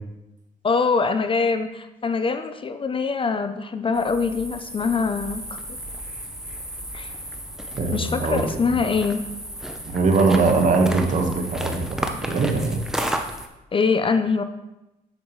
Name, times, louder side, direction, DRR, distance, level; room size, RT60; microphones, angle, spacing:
voice 1, 0.6-5.6 6.9-7.1 7.9-9.2 13.7-14.4, left 4 dB, 35° left, 9 dB, 0.5 m, -23 dB
sound 1, 3.9-13.5, right 1 dB, 5° right, 0.7 m, -33 dB
voice 2, 7.8-8.4 9.9-12.8, right 3 dB, 50° right, 3 dB, 1.3 m, -21 dB
8.1 x 7.0 x 3.1 m, 0.95 s
cardioid pair, 95°, 16 cm